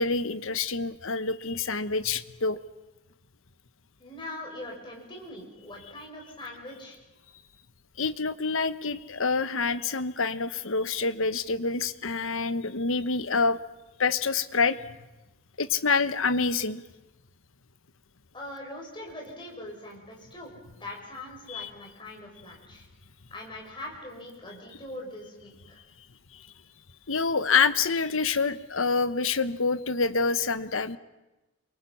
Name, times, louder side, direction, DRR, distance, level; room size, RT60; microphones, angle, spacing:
voice 1, 0.0-2.6 8.0-13.6 14.0-15.0 15.6-16.8 21.5-21.7 27.1-31.0, left 4 dB, 70° left, 12 dB, 1.1 m, -27 dB
voice 2, 4.0-7.0 18.3-22.8 23.3-25.8, left 1 dB, 20° left, -1 dB, 6.7 m, -42 dB
29.5 x 23.5 x 5.7 m, 1.0 s
head